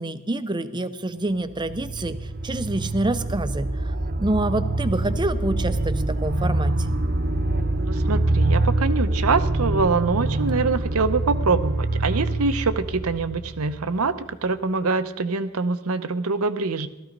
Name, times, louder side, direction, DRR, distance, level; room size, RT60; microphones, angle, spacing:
voice 1, 0.0-6.9, right 1 dB, 20° right, 12 dB, 0.6 m, -27 dB
sound 1, 1.3-14.1, right 2 dB, 45° right, 0.9 m, -25 dB
voice 2, 7.8-16.9, right 4 dB, 75° right, 10 dB, 0.8 m, -24 dB
16.0 x 13.5 x 5.3 m, 0.93 s
head